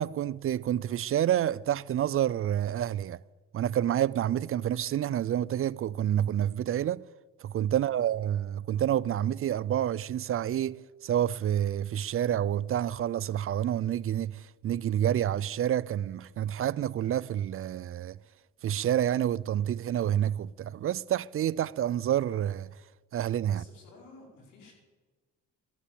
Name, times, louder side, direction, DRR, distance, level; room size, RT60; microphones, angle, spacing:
voice 1, 0.0-3.2 3.5-7.0 7.4-18.2 18.6-22.7 23.1-23.6, right 11 dB, 45° right, 0.4 m, -28 dB
voice 2, 7.7-8.2 23.5-24.7, left 3 dB, 85° left, 4.8 m, -53 dB
14.0 x 11.5 x 7.2 m
cardioid pair, 90°, 30 cm